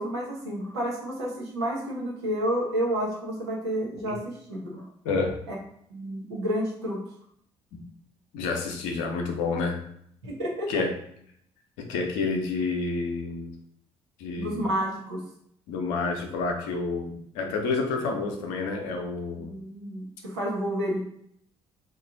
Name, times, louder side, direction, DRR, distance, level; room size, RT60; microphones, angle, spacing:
voice 1, 0.0-4.9 5.5-5.6 5.9-7.0 10.2-10.8 14.4-15.2 19.4-21.0, equal, 90° right, -4 dB, 1.0 m, -30 dB
voice 2, 5.0-5.4 8.3-9.8 10.7-10.9 11.8-13.5 14.2-14.7 15.7-19.5, left 4 dB, 75° left, 3 dB, 0.7 m, -29 dB
3.0 x 2.5 x 3.9 m, 0.70 s
hypercardioid pair, 50°, 14 cm